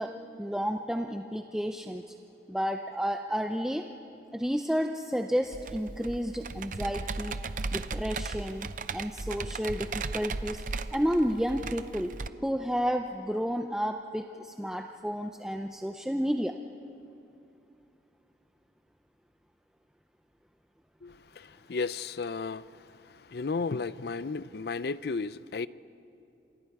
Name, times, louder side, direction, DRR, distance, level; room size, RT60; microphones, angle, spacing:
voice 1, 0.0-2.0 2.5-3.8 4.3-7.4 7.7-8.7 8.9-10.6 10.9-12.2 12.4-16.6, equal, 5° right, 0.5 m, -31 dB
Computer keyboard, 5.5-12.3, right 3 dB, 45° right, 0.6 m, -36 dB
voice 2, 21.0-25.7, left 4 dB, 65° left, 0.5 m, -34 dB
28.0 x 27.5 x 4.8 m
head